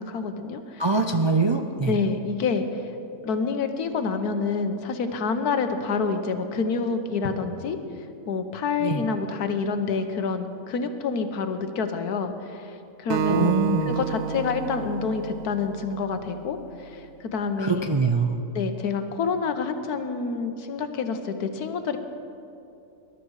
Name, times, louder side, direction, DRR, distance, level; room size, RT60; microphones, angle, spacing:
voice 1, 0.0-0.8 1.8-2.9 3.2-7.8 8.3-13.5 13.9-17.9 18.5-22.0, left 5 dB, 85° left, 8 dB, 1.5 m, -28 dB
voice 2, 0.8-1.9 8.8-9.0 13.3-13.9 17.6-18.4, right 4 dB, 45° right, 4 dB, 0.3 m, -23 dB
Acoustic guitar, 13.1-16.4, right 9 dB, 70° right, 1.0 m, -30 dB
20.0 x 12.0 x 4.8 m, 2.7 s
omnidirectional pair, 1.6 m